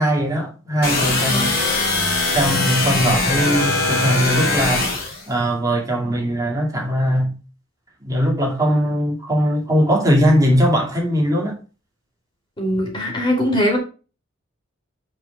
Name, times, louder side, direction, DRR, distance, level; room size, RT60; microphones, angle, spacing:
voice 1, 0.0-1.6 2.3-4.9 5.3-7.3 8.0-11.6, equal, 15° right, 2.3 m, -20 dB
sound 1, 0.8-5.2, left 2 dB, 45° left, 3.1 m, -21 dB
voice 2, 12.6-13.8, equal, 25° left, 3.2 m, -20 dB
5.7 x 5.2 x 5.8 m
head